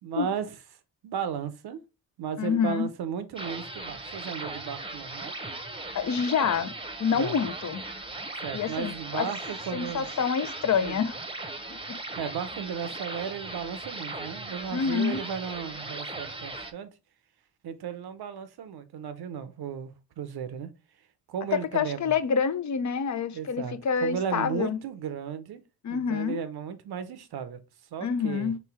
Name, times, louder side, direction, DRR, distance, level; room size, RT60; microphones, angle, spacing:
voice 1, 0.0-0.6 1.0-1.8 2.2-5.3 7.1-7.4 8.4-10.1 10.8-11.0 12.2-16.9 17.6-20.7 21.3-22.2 23.3-25.6 25.9-27.6 27.9-28.5, right 7 dB, 85° right, 0.7 m, -35 dB
voice 2, 2.4-2.9 5.9-6.7 7.0-7.8 8.5-9.3 9.7-11.2 11.7-12.0 14.7-15.2 21.5-24.8 25.8-26.4 28.0-28.6, left 6 dB, 50° left, 0.6 m, -27 dB
sound 1, 3.4-16.7, right 2 dB, 15° right, 0.8 m, -38 dB
3.3 x 3.1 x 4.5 m
cardioid pair, 50°, 37 cm